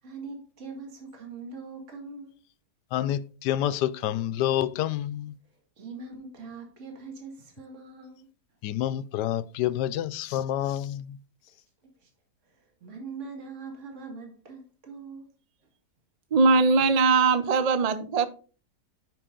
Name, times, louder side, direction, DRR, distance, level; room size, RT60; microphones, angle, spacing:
voice 1, 0.0-2.3 5.5-8.3 11.5-12.1 12.4-15.3, right 4 dB, 45° right, 2.3 m, -42 dB
voice 2, 2.9-5.3 8.6-11.2, left 12 dB, 85° left, 1.2 m, -28 dB
voice 3, 16.3-18.3, right 4 dB, 70° right, 0.3 m, -21 dB
9.4 x 5.9 x 3.8 m
omnidirectional pair, 1.7 m